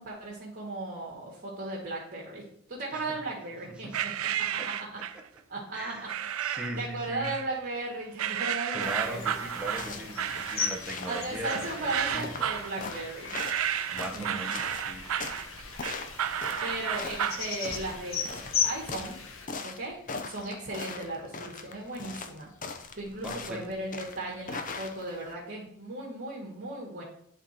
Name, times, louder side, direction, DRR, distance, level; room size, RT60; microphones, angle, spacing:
voice 1, 0.0-2.4 2.7-4.1 4.5-4.6 5.5-5.9 6.8-9.2 11.0-13.4 14.1-14.4 16.6-19.2 19.6-20.0 20.2-22.5 22.9-27.0, right 2 dB, 50° right, -5 dB, 1.9 m, -36 dB
voice 2, 3.7-4.1 4.6-4.7 5.0-5.2 5.7-7.3 8.7-12.6 13.9-15.1 23.2-23.6, right 1 dB, 5° right, 0 dB, 1.1 m, -39 dB
sound 1, 3.9-5.3 6.1-6.8 7.2-7.8 8.2-17.5, right 9 dB, 80° right, 0.5 m, -32 dB
sound 2, 8.8-19.5, left 7 dB, 70° left, 1.2 m, -37 dB
sound 3, 9.6-25.3, left 4 dB, 40° left, 0.7 m, -41 dB
11.0 x 3.9 x 4.3 m, 0.70 s
head